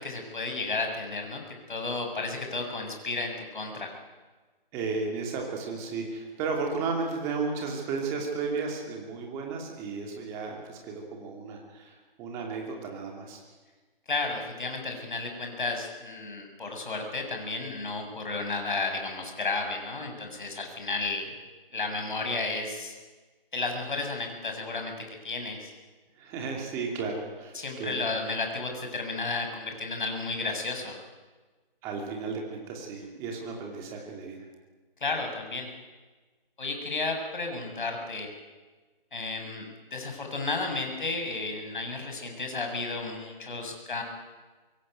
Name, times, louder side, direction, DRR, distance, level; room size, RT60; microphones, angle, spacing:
voice 1, 0.0-1.4 1.7-3.9 14.1-21.3 21.7-22.9 23.5-25.0 25.2-25.7 27.5-31.0 35.0-35.7 36.6-38.3 39.1-44.0, left 3 dB, 55° left, 3 dB, 7.4 m, -33 dB
voice 2, 4.7-13.4 26.2-28.0 31.8-34.5, right 4 dB, 10° right, 1 dB, 2.8 m, -34 dB
24.5 x 23.0 x 9.3 m, 1.3 s
hypercardioid pair, 170°, 29 cm